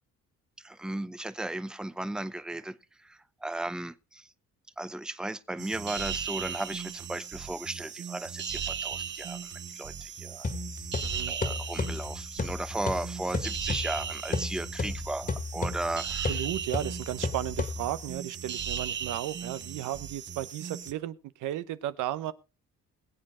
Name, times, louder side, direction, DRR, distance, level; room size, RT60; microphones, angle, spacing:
voice 1, 0.6-2.8 3.0-4.2 4.8-9.4 9.7-10.5 11.3-16.3, right 2 dB, ahead, 0.6 m, -35 dB
sound 1, 5.6-20.9, right 8 dB, 40° right, 0.7 m, -37 dB
sound 2, 10.4-18.2, left 3 dB, 30° left, 1.9 m, -34 dB
voice 2, 11.0-11.4 16.3-22.3, right 13 dB, 90° right, 0.8 m, -34 dB
21.5 x 7.8 x 3.7 m
cardioid pair, 90°, 30 cm